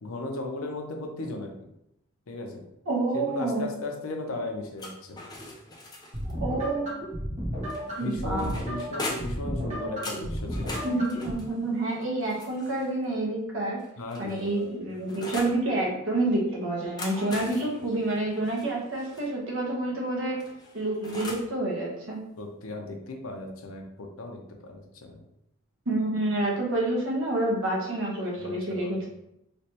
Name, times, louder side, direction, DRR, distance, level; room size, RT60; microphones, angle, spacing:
voice 1, 0.0-1.5 2.3-2.6 3.1-5.2 8.0-10.8 14.0-14.7 22.4-25.2 28.4-29.0, left 2 dB, 90° left, 3 dB, 0.6 m, -36 dB
voice 2, 2.9-3.7 6.4-6.9 8.0-8.5 10.8-13.8 14.2-20.4 20.7-22.2 25.9-29.1, right 2 dB, 70° right, -3 dB, 1.0 m, -28 dB
sound 1, 4.8-6.3 7.7-9.5 10.0-13.0 13.8-15.6 16.7-19.3 20.4-21.6, left 2 dB, 20° left, 0.4 m, -41 dB
sound 2, 6.1-11.3, equal, 35° right, 1.2 m, -33 dB
3.2 x 3.0 x 2.9 m, 0.81 s
head